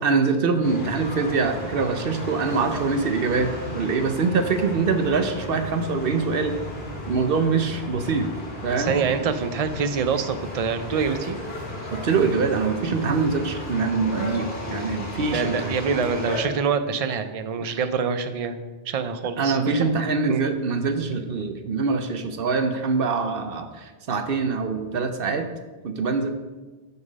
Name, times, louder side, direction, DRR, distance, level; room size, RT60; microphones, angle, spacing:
voice 1, 0.0-6.6 7.1-8.3 8.6-9.1 11.9-15.8 17.6-17.8 19.4-25.5 25.8-26.3, right 4 dB, 65° right, 7 dB, 0.9 m, -24 dB
sound 1, 0.6-16.4, left 1 dB, 70° left, 2.1 m, -34 dB
voice 2, 8.8-11.4 15.3-18.6 18.9-19.6 20.3-20.4, right 5 dB, 45° right, 9 dB, 0.6 m, -25 dB
7.2 x 6.7 x 5.3 m, 1.3 s
omnidirectional pair, 1.1 m